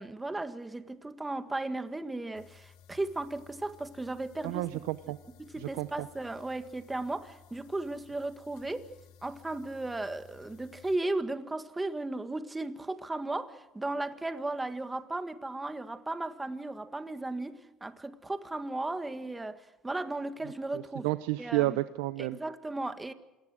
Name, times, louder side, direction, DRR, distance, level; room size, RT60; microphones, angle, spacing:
voice 1, 0.0-4.8 5.4-8.9 9.2-21.1 21.4-21.8 22.2-23.1, right 2 dB, 15° right, 1.8 m, -36 dB
sound 1, 2.3-11.0, left 8 dB, 75° left, 2.1 m, -57 dB
voice 2, 4.4-5.2 5.6-5.9 21.0-22.4, right 18 dB, 85° right, 0.7 m, -30 dB
27.5 x 18.5 x 6.3 m
supercardioid pair, 90°, 0 cm